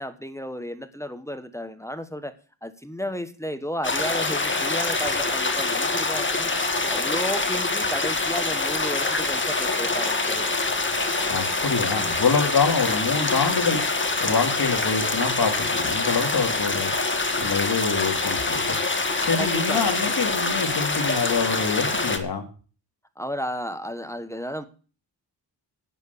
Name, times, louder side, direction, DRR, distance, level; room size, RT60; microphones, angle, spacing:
voice 1, 0.0-2.3 2.6-6.5 6.9-10.5 19.4-19.9 23.2-24.6, equal, 5° left, 10 dB, 1.2 m, -33 dB
sound 1, 3.8-22.2, left 3 dB, 25° left, 1.8 m, -25 dB
voice 2, 11.3-13.8 14.2-16.9 17.4-18.8 19.2-22.4, left 5 dB, 55° left, 4 dB, 3.1 m, -25 dB
11.0 x 9.1 x 8.4 m, 0.39 s
wide cardioid pair, 100°, 44 cm